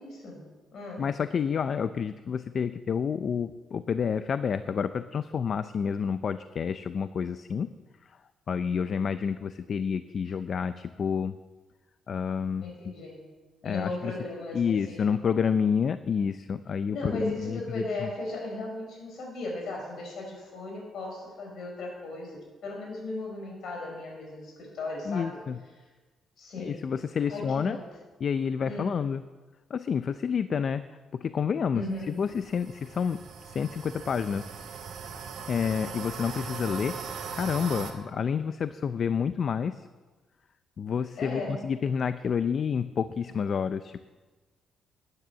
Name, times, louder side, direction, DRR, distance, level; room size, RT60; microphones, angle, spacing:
voice 1, 0.0-1.0 12.6-13.3 13.6-15.3 16.9-25.4 26.4-26.9 27.3-27.9 28.6-28.9 31.7-32.2 41.2-41.7, left 2 dB, 70° left, 0 dB, 5.5 m, -37 dB
voice 2, 1.0-7.7 8.1-8.2 8.5-11.3 12.1-12.9 13.6-14.1 14.5-18.1 25.1-25.6 26.6-27.8 28.2-29.2 29.7-30.8 31.1-34.5 35.5-37.0 37.3-39.9 40.8-44.1, left 6 dB, 50° left, 12 dB, 0.5 m, -29 dB
sound 1, 31.9-37.9, right 6 dB, 75° right, 2.1 m, -40 dB
12.0 x 9.7 x 7.4 m, 1.3 s
cardioid pair, 90°, 0 cm